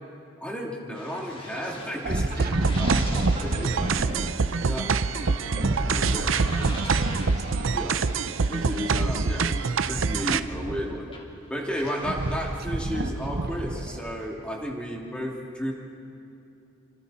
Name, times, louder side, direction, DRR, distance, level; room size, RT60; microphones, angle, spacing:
voice 1, 0.4-2.5 2.8-3.1 3.4-4.1 4.6-4.9 5.9-6.3 7.7-8.0 8.5-11.1 11.5-15.7, equal, 5° left, -2 dB, 2.7 m, -33 dB
sound 1, 0.9-10.8 11.1-14.9, left 1 dB, 30° left, 2.5 m, -44 dB
sound 2, 2.0-4.4 5.5-7.9 8.8-11.2 11.7-14.1, right 1 dB, 50° right, 0.9 m, -30 dB
voice 2, 2.4-2.9 3.3-6.3 6.7-8.0, right 2 dB, 35° right, -1 dB, 2.4 m, -43 dB
sound 3, 2.4-10.4, right 5 dB, 80° right, 0.7 m, -26 dB
27.5 x 26.0 x 4.3 m, 2.8 s
head